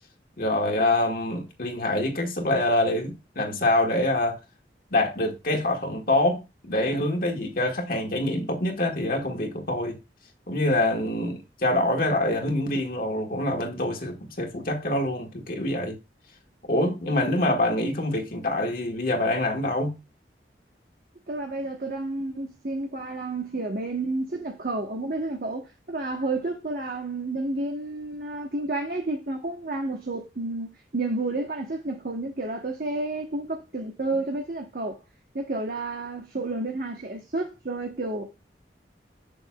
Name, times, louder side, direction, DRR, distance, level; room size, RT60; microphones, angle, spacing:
voice 1, 0.4-4.4 4.9-10.0 10.5-16.0 16.6-20.0, left 1 dB, 50° left, 1.5 m, -25 dB
voice 2, 21.3-35.0 35.3-38.2, right 2 dB, 55° right, 1.1 m, -30 dB
7.6 x 6.6 x 2.3 m
head